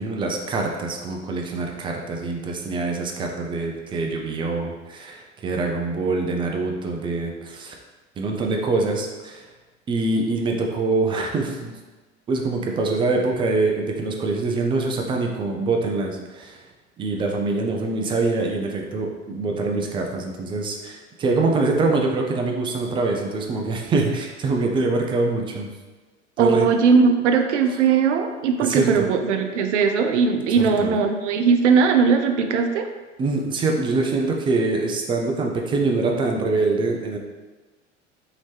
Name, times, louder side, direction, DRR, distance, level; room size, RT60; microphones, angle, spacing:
voice 1, 0.0-7.8 8.2-9.5 9.9-11.8 12.3-16.6 17.0-25.7 26.4-26.7 28.6-29.1 30.5-30.9 33.2-37.2, right 3 dB, 15° right, 1 dB, 0.3 m, -24 dB
voice 2, 26.4-32.9, right 5 dB, 70° right, 6 dB, 0.5 m, -19 dB
3.0 x 2.8 x 3.3 m, 1.2 s
figure-of-eight pair, 75°, 37 cm